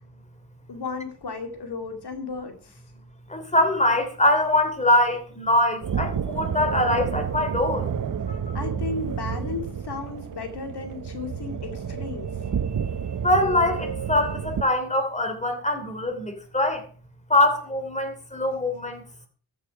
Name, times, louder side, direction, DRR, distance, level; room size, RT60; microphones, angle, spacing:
voice 1, 0.7-2.8 8.5-12.3, left 4 dB, 80° left, 2.5 m, -34 dB
voice 2, 3.3-7.8 13.2-16.8 17.3-19.0, left 1 dB, 20° left, 3.0 m, -23 dB
sound 1, 5.8-14.6, right 7 dB, 55° right, 0.9 m, -30 dB
14.0 x 7.4 x 5.8 m
wide cardioid pair, 90°, 39 cm